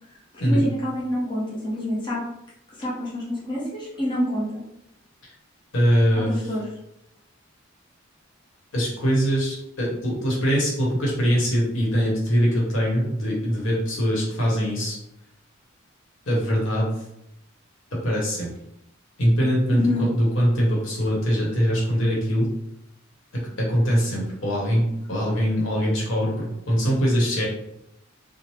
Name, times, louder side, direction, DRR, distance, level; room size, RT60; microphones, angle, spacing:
voice 1, 0.5-2.2 2.8-4.6 6.1-6.7 19.7-20.1, left 1 dB, 25° left, -7 dB, 0.6 m, -27 dB
voice 2, 5.7-6.4 8.7-15.0 16.3-17.0 17.9-18.5 19.2-22.5 23.3-27.5, equal, 70° left, -3 dB, 1.0 m, -22 dB
2.9 x 2.0 x 3.1 m, 0.83 s
head